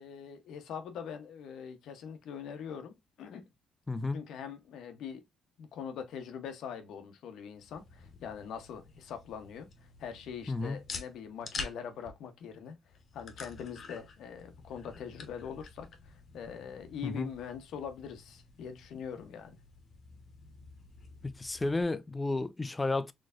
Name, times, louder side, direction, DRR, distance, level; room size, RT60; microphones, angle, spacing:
voice 1, 0.0-3.4 4.1-5.2 5.6-9.7 10.0-12.8 13.1-19.6, left 7 dB, 80° left, 0.8 m, -43 dB
voice 2, 3.9-4.3 10.5-10.8 17.0-17.3 21.2-23.1, left 2 dB, 20° left, 0.5 m, -32 dB
sound 1, 7.5-21.8, left 4 dB, 50° left, 1.0 m, -48 dB
4.3 x 3.1 x 2.4 m
cardioid pair, 90°, 0 cm